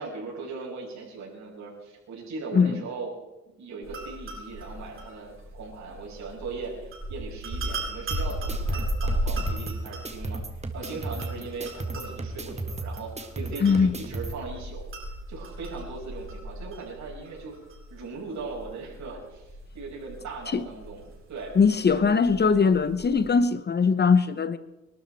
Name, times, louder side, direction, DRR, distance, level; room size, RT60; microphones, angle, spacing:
voice 1, 0.0-3.1 3.5-10.4 10.7-14.8 15.3-17.6 17.9-21.0 21.3-21.5 21.8-22.0, right 4 dB, 65° right, 6.1 m, -39 dB
voice 2, 2.5-2.8 13.6-13.9 20.5-20.7 21.6-24.6, left 5 dB, 35° left, 0.9 m, -21 dB
sound 1, 3.8-23.3, right 1 dB, 45° right, 7.4 m, -36 dB
sound 2, 8.1-14.3, right 2 dB, 20° right, 2.0 m, -35 dB
23.0 x 12.5 x 4.6 m
cardioid pair, 90°, 30 cm